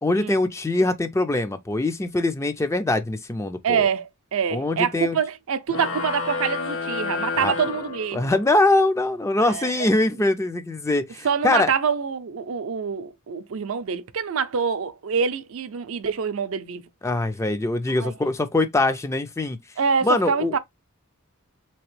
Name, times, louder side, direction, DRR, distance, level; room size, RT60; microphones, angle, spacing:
voice 1, 0.0-3.9 4.5-5.2 7.4-7.5 8.1-11.7 17.0-19.6 20.0-20.5, left 2 dB, 15° left, 0.3 m, -23 dB
voice 2, 3.6-8.3 9.4-9.9 11.2-16.9 17.9-18.1 19.8-20.6, right 6 dB, 70° right, 0.5 m, -26 dB
sound 1, 5.7-8.6, left 4 dB, 60° left, 1.0 m, -30 dB
3.5 x 2.9 x 3.0 m
head